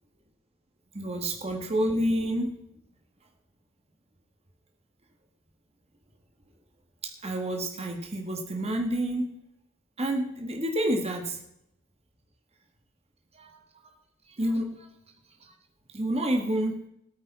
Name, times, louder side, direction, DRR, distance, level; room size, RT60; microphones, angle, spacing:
voice 1, 0.9-2.5 7.0-9.3 10.0-11.4 13.3-13.6 14.4-14.9 15.9-16.8, right 1 dB, 30° right, 3 dB, 1.7 m, -29 dB
16.5 x 9.2 x 4.2 m, 0.79 s
head